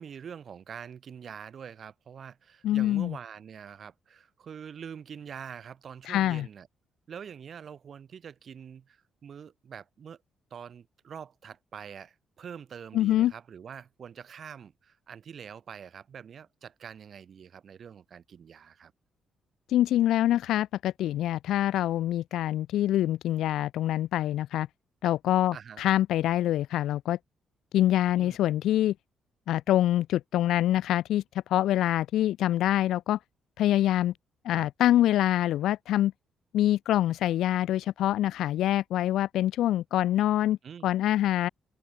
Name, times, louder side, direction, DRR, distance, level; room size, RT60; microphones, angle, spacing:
voice 1, 0.0-6.7 7.1-10.2 10.5-18.9 25.5-25.8 28.2-28.4 34.5-34.7 40.6-40.9, right 7 dB, 50° right, 3.0 m, -45 dB
voice 2, 2.6-3.1 6.1-6.5 12.9-13.3 19.7-24.7 25.0-27.2 27.7-28.9 29.5-31.2 31.5-33.2 33.6-34.1 34.4-36.1 36.5-40.6 40.8-41.5, left 13 dB, 85° left, 1.1 m, -25 dB
open air
cardioid pair, 130°, 0 cm